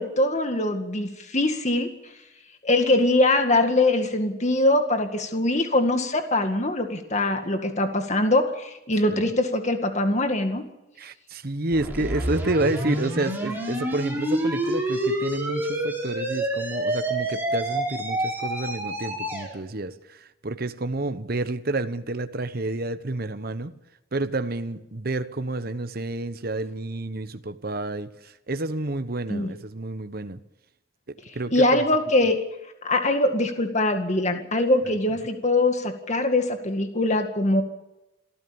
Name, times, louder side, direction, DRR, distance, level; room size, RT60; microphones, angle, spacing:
voice 1, 0.0-1.9 2.6-10.6 29.3-29.5 31.5-32.4 32.8-37.6, left 2 dB, 35° left, 6 dB, 2.0 m, -22 dB
voice 2, 11.0-23.7 24.1-30.4 31.3-31.6 34.9-35.0, right 2 dB, 50° right, 10 dB, 1.0 m, -29 dB
sound 1, 11.7-19.5, right 1 dB, 10° right, 5.3 m, -28 dB
27.0 x 14.0 x 7.1 m, 0.96 s
head